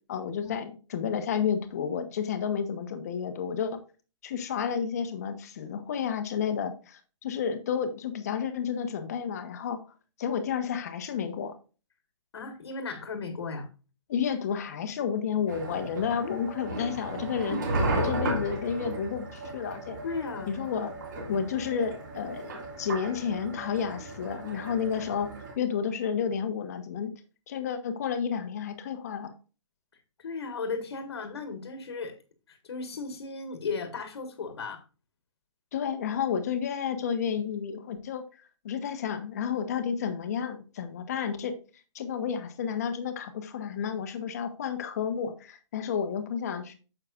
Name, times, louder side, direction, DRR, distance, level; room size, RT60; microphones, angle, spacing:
voice 1, 0.1-3.8 4.2-9.8 10.2-11.5 14.1-20.0 20.5-20.9 21.3-25.3 25.6-27.1 27.5-29.3 35.7-38.2 38.6-41.5 41.9-46.7, left 7 dB, 30° left, 9 dB, 1.1 m, -31 dB
voice 2, 12.3-13.7 16.2-16.4 20.0-20.6 30.2-32.1 32.5-34.8, left 4 dB, 55° left, 6 dB, 1.6 m, -35 dB
sound 1, 15.5-25.5, right 2 dB, 35° right, 2.6 m, -35 dB
9.4 x 7.5 x 2.5 m, 0.33 s
hypercardioid pair, 175°, 16 cm